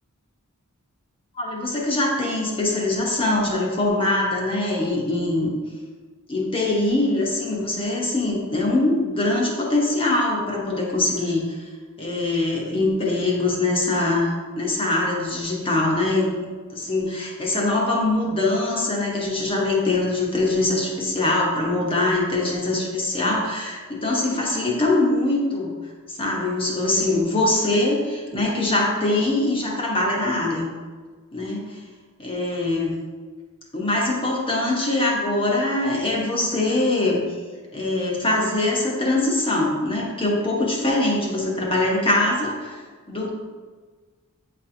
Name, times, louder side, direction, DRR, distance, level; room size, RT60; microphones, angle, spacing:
voice 1, 1.4-5.5 6.3-11.7 12.0-16.3 16.7-25.7 26.1-30.7 31.3-31.8 32.2-32.9 33.7-37.2 37.7-43.3, left 2 dB, 25° left, -3 dB, 1.0 m, -23 dB
8.2 x 4.2 x 2.7 m, 1.4 s
head